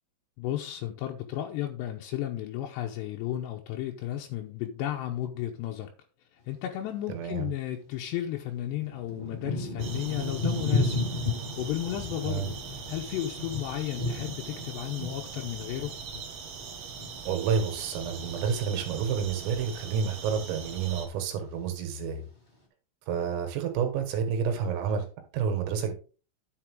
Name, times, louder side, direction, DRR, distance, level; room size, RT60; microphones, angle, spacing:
voice 1, 0.4-5.9 6.5-11.0 11.6-12.6 12.9-16.0, left 12 dB, 80° left, 2 dB, 2.6 m, -33 dB
voice 2, 7.1-7.5 12.2-12.5 17.3-22.3 23.1-25.1 25.3-25.9, right 7 dB, 85° right, 6 dB, 4.4 m, -29 dB
Thunder / Rain, 7.7-7.8 8.5-18.0 18.3-19.1 19.7-20.1 20.3-21.1 21.7-21.8, left 2 dB, 35° left, 0.7 m, -34 dB
sound 1, 9.8-21.1, right 5 dB, 65° right, 1.7 m, -41 dB
10.5 x 6.9 x 3.7 m, 0.36 s
omnidirectional pair, 5.9 m